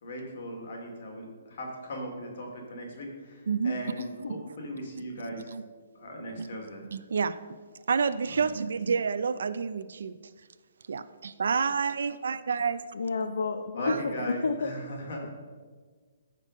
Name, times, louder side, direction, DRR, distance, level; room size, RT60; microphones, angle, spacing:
voice 1, 0.0-5.5 5.9-6.8 8.3-8.4 13.7-15.3, equal, 50° left, 1 dB, 2.9 m, -38 dB
voice 2, 3.5-3.8 4.3-4.6 5.5-5.6 6.4-6.5 6.9-7.4 7.9-10.1 10.9-12.8 13.8-14.3, right 5 dB, 75° right, 12 dB, 0.5 m, -29 dB
voice 3, 4.0-4.3 12.9-14.7, left 4 dB, 85° left, 7 dB, 0.8 m, -30 dB
15.0 x 5.4 x 6.5 m, 1.5 s
hypercardioid pair, 170°, 0 cm